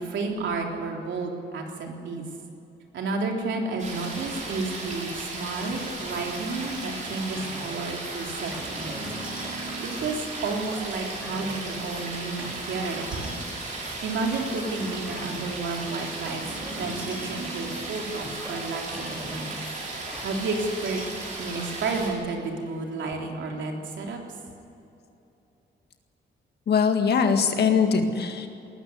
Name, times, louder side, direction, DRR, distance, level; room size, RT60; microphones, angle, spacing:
voice 1, 0.0-2.2 2.9-9.0 9.8-13.5 14.0-16.4 16.8-19.5 20.2-21.0 21.3-24.2, right 3 dB, 85° right, 1 dB, 3.4 m, -31 dB
sound 1, 3.8-22.1, right 2 dB, 40° right, 5.1 m, -36 dB
sound 2, 5.6-21.1, right 1 dB, 5° right, 3.4 m, -42 dB
voice 2, 26.7-28.5, left 6 dB, 60° left, 5 dB, 1.9 m, -22 dB
20.0 x 13.5 x 9.6 m, 2.9 s
wide cardioid pair, 175°, 19 cm